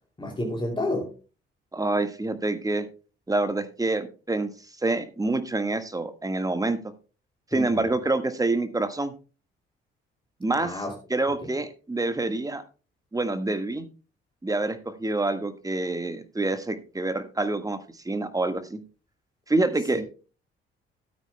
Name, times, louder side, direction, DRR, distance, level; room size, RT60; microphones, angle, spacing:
voice 1, 0.2-1.1 7.5-7.9 10.6-10.9 19.9-20.0, left 1 dB, 15° left, 2.8 m, -30 dB
voice 2, 1.7-2.9 3.3-4.5 4.8-6.8 7.5-9.1 10.4-10.8 11.1-12.6 13.1-13.9 14.4-17.8 18.0-18.8 19.5-20.0, right 2 dB, 10° right, 1.5 m, -27 dB
16.5 x 9.0 x 2.2 m
figure-of-eight pair, 45°, 30 cm